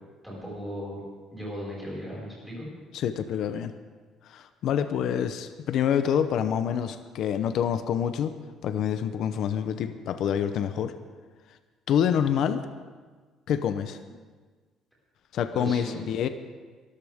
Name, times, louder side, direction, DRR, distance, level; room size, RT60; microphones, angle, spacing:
voice 1, 0.2-1.0 1.3-2.7 15.5-16.0, equal, ahead, -6 dB, 5.3 m, -36 dB
voice 2, 2.9-3.7 4.2-8.3 8.6-10.9 11.9-12.6 13.5-14.0 15.3-16.3, left 8 dB, 50° left, 10 dB, 0.7 m, -27 dB
23.0 x 13.5 x 3.6 m, 1.4 s
cardioid pair, 175°, 0 cm